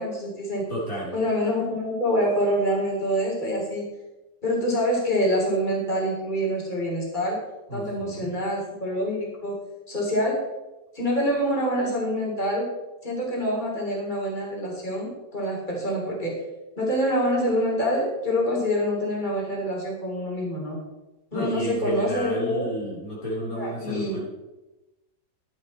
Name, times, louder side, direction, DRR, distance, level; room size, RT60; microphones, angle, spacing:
voice 1, 0.0-0.6 1.1-3.8 4.4-7.4 7.7-9.6 9.9-10.4 10.9-12.7 13.0-16.3 16.8-20.8 21.3-22.7 23.4-24.2, equal, 25° left, -2 dB, 3.4 m, -26 dB
voice 2, 0.7-1.1 7.7-8.3 21.3-24.3, equal, 50° left, -5 dB, 3.2 m, -31 dB
11.5 x 10.0 x 4.2 m, 1.0 s
omnidirectional pair, 1.9 m